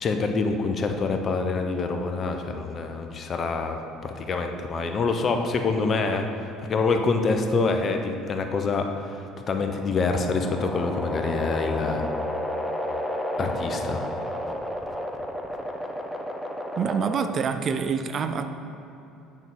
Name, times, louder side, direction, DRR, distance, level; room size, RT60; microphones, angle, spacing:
voice 1, 0.0-6.3 6.6-12.1 13.4-14.0, left 4 dB, 40° left, 5 dB, 0.7 m, -26 dB
sound 1, 9.7-17.6, equal, 5° left, 0.8 m, -32 dB
voice 2, 16.8-18.5, right 6 dB, 40° right, 9 dB, 0.4 m, -26 dB
9.1 x 5.7 x 3.8 m, 2.9 s
figure-of-eight pair, 60°, 0 cm